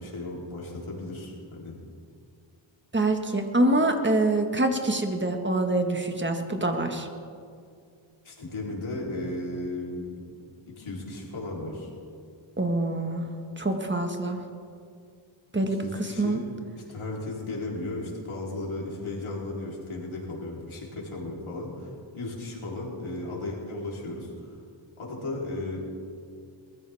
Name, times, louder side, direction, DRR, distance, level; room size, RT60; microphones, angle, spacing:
voice 1, 0.0-1.7 8.2-10.2 10.8-11.9 15.8-16.4 16.8-24.5 25.0-25.8, left 2 dB, 75° left, -4 dB, 3.8 m, -35 dB
voice 2, 2.9-7.1 12.6-13.3 13.6-14.4 15.5-16.4, right 2 dB, 25° right, 4 dB, 1.6 m, -25 dB
21.5 x 14.0 x 3.6 m, 2.3 s
wide cardioid pair, 75°, 49 cm